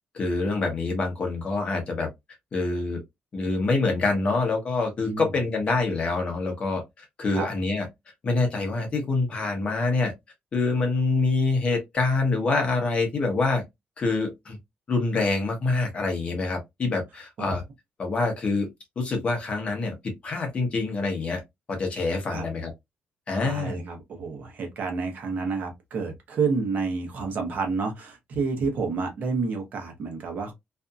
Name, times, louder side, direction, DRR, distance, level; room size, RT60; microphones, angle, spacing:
voice 1, 0.1-2.1 2.5-3.0 3.3-7.9 8.2-10.1 10.5-13.6 14.0-14.6 14.9-17.6 18.0-18.7 19.0-21.4 21.7-22.7 23.3-23.8, left 3 dB, 35° left, 0.9 m, -26 dB
voice 2, 23.4-30.5, right 4 dB, 50° right, 0.9 m, -29 dB
2.6 x 2.5 x 2.3 m
cardioid pair, 175°, 3 cm